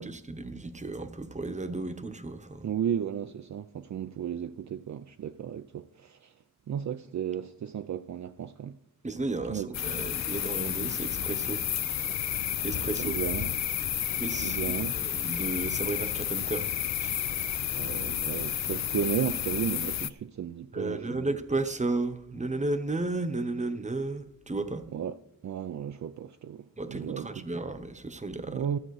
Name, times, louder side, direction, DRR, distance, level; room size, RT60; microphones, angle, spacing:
voice 1, 0.0-2.7 9.0-11.6 12.6-13.1 14.2-16.7 17.0-17.2 20.7-24.9 26.8-28.7, right 2 dB, 20° right, 0.9 m, -33 dB
voice 2, 2.6-6.3 6.7-8.7 9.5-9.7 12.7-13.6 14.4-15.0 17.7-21.3 24.9-25.2 25.4-27.4 28.5-28.8, right 8 dB, 55° right, 0.4 m, -34 dB
sound 1, 9.7-20.1, left 10 dB, 50° left, 0.5 m, -31 dB
13.5 x 7.4 x 4.8 m
cardioid pair, 70°, 35 cm